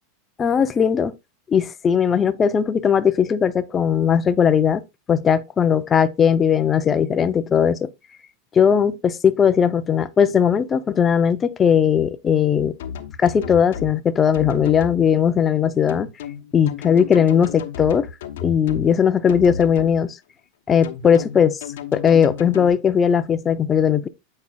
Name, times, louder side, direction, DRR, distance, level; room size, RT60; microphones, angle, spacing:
voice 1, 0.4-1.1 1.5-4.8 5.1-7.9 8.5-12.7 13.2-16.1 16.5-18.1 18.4-20.2 20.7-21.6 21.9-24.1, left 7 dB, 20° left, 0.6 m, -18 dB
sound 1, 12.8-13.9 14.3-15.0 15.9-18.9 19.3-19.9 20.8-22.7, left 8 dB, 80° left, 1.0 m, -33 dB
8.3 x 5.4 x 2.3 m
supercardioid pair, 145°, 0 cm